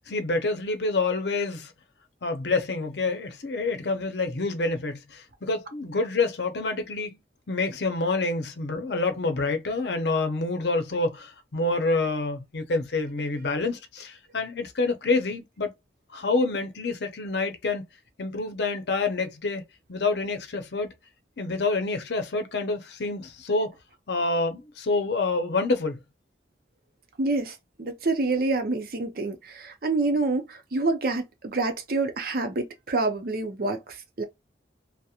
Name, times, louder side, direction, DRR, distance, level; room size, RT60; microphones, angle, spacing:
voice 1, 0.1-1.7 2.2-7.2 7.5-15.7 16.1-17.8 18.2-19.6 19.9-20.9 21.4-23.7 24.1-26.0, left 3 dB, 70° left, 0.6 m, -27 dB
voice 2, 27.2-34.2, right 3 dB, 55° right, 0.6 m, -27 dB
2.9 x 2.1 x 2.4 m
head